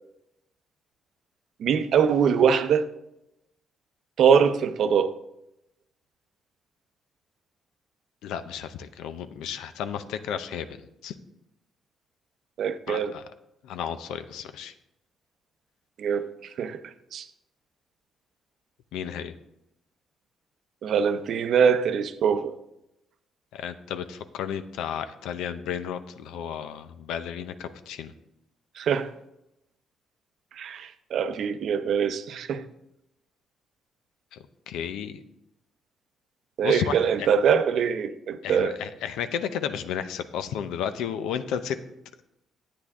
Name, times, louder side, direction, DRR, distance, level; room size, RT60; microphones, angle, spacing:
voice 1, 1.6-2.9 4.2-5.1 12.6-13.1 16.0-16.3 16.6-16.8 17.1-17.2 20.8-22.5 28.8-29.1 30.6-32.6 36.6-38.8, right 7 dB, 70° right, 0.6 m, -23 dB
voice 2, 8.2-11.2 12.9-13.2 13.6-14.7 18.9-19.3 23.5-28.1 34.3-34.4 34.7-35.2 36.6-37.3 38.4-41.8, left 8 dB, 90° left, 0.6 m, -33 dB
9.8 x 8.4 x 3.6 m
cardioid pair, 90°, 0 cm